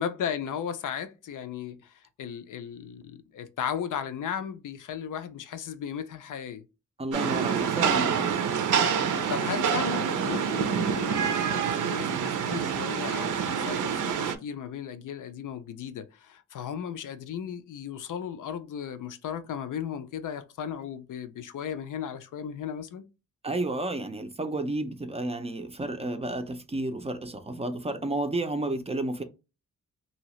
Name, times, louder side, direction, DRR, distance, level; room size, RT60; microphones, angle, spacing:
voice 1, 0.0-6.6 9.3-23.0, left 8 dB, 85° left, 0.5 m, -36 dB
voice 2, 7.0-8.3 23.4-29.2, right 2 dB, 20° right, 0.4 m, -31 dB
Rain, 7.1-14.4, right 7 dB, 80° right, 0.5 m, -27 dB
2.8 x 2.7 x 3.0 m
wide cardioid pair, 120°, 30 cm